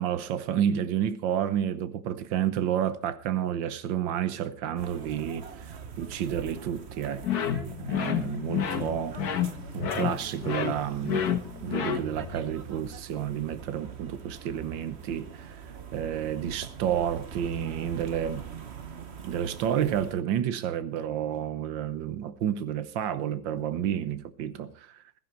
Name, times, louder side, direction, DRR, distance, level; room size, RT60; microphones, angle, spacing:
voice 1, 0.0-7.3 7.8-9.2 9.7-11.3 11.6-15.6 15.9-18.4 19.2-25.0, right 9 dB, 90° right, 1.7 m, -30 dB
sound 1, 4.8-20.1, right 6 dB, 40° right, 1.2 m, -43 dB
sound 2, 7.2-12.4, left 8 dB, 60° left, 1.8 m, -30 dB
15.5 x 13.5 x 4.4 m
omnidirectional pair, 2.0 m